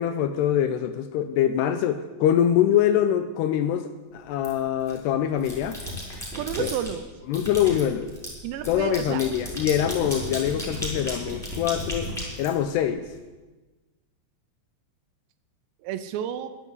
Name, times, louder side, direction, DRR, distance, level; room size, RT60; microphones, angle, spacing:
voice 1, 0.0-5.8 6.6-6.7 7.3-8.1 8.7-12.1 12.4-13.1, left 10 dB, 80° left, 10 dB, 2.5 m, -24 dB
sound 1, 4.4-5.0 5.4-6.9 7.3-13.1, left 1 dB, ahead, 4.9 m, -34 dB
voice 2, 6.4-7.1 7.4-7.5 8.4-9.3 10.0-10.3 15.8-16.6, right 10 dB, 80° right, 11 dB, 2.8 m, -31 dB
11.5 x 11.0 x 9.2 m, 1.2 s
omnidirectional pair, 5.3 m